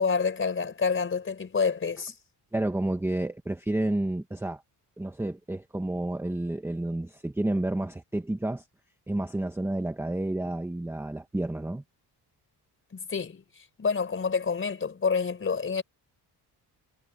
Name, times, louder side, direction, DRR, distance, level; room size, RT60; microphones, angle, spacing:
voice 1, 0.0-2.1 12.9-13.4 13.8-15.8, left 5 dB, 30° left, 4.3 m, -28 dB
voice 2, 2.5-4.6 5.0-8.6 9.1-11.8, right 1 dB, 5° right, 1.0 m, -30 dB
wide cardioid pair, 170°, 41 cm